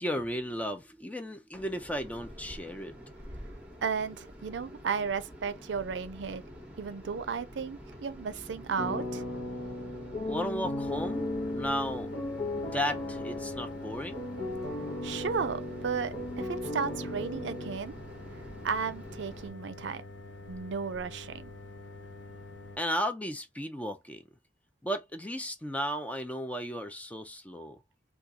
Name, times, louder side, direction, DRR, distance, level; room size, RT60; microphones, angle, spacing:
voice 1, 0.0-2.9 10.3-12.1 12.7-14.2 22.8-24.2 24.8-27.8, equal, 10° left, 0.4 m, -34 dB
sound 1, 1.5-19.5, equal, 10° right, 0.9 m, -48 dB
voice 2, 3.8-6.4 6.8-9.2 15.0-17.9 18.6-20.0 20.5-21.5, right 6 dB, 80° right, 0.5 m, -34 dB
sound 2, 8.8-17.8, left 1 dB, 55° left, 0.9 m, -36 dB
sound 3, 10.9-22.8, left 2 dB, 85° left, 0.7 m, -47 dB
3.6 x 2.3 x 2.8 m
head